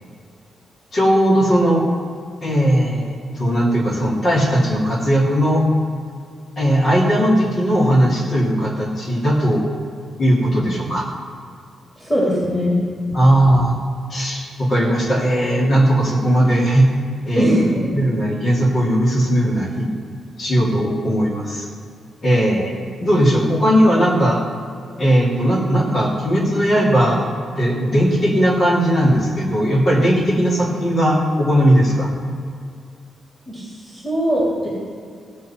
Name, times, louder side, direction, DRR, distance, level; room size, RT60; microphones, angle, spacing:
voice 1, 0.9-1.8 2.4-5.6 6.6-9.6 10.2-11.1 13.1-13.7 14.1-16.9 17.2-17.6 17.9-19.9 20.4-21.7 22.2-22.7 23.0-24.4 25.0-27.3 27.6-32.1, equal, 40° left, -3 dB, 2.6 m, -17 dB
voice 2, 12.0-12.8 13.1-13.2 17.3-17.9 33.5-34.7, equal, 10° left, -6 dB, 2.7 m, -20 dB
15.5 x 7.5 x 4.4 m, 2.3 s
cardioid pair, 135°, 0 cm